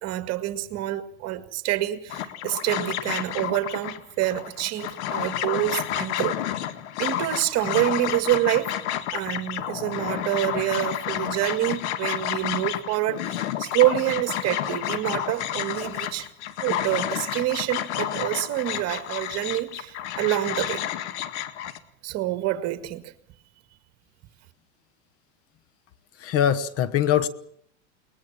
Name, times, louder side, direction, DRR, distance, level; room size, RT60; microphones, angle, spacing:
voice 1, 0.0-6.4 7.0-8.7 9.1-16.3 16.6-20.8 22.0-23.1, right 15 dB, 45° right, 2.0 m, -27 dB
sound 1, 2.1-21.8, left 11 dB, 70° left, 1.9 m, -30 dB
voice 2, 26.2-27.3, left 10 dB, 40° left, 1.2 m, -22 dB
21.5 x 20.5 x 7.4 m
supercardioid pair, 120°, 36 cm